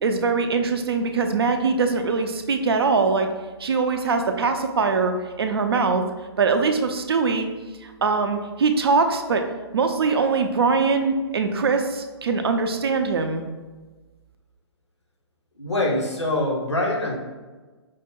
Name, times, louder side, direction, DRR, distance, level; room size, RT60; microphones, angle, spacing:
voice 1, 0.0-3.3 3.6-6.0 6.4-7.5 7.8-9.4 9.7-13.4, right 4 dB, 60° right, 6 dB, 0.5 m, -22 dB
voice 2, 15.6-17.2, left 1 dB, 85° left, -1 dB, 1.0 m, -24 dB
4.9 x 2.1 x 3.6 m, 1.3 s
figure-of-eight pair, 125°, 14 cm